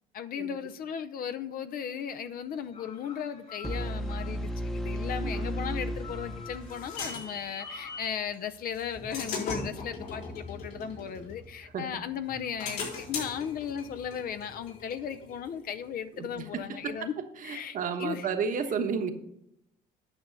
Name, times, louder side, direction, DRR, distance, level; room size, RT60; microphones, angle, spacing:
voice 1, 0.1-17.1 17.4-18.3, left 8 dB, 60° left, 10 dB, 0.7 m, -36 dB
sound 1, 2.3-8.0, left 6 dB, 45° left, 2.0 m, -50 dB
sound 2, 3.6-7.5, equal, 5° left, 0.8 m, -34 dB
sound 3, 6.0-8.2 8.7-11.8 12.3-15.7, left 3 dB, 75° left, 4.2 m, -39 dB
voice 2, 16.2-16.9 17.4-19.1, right 6 dB, 55° right, 7 dB, 1.2 m, -32 dB
9.8 x 6.1 x 5.2 m, 0.78 s
cardioid pair, 110°, 17 cm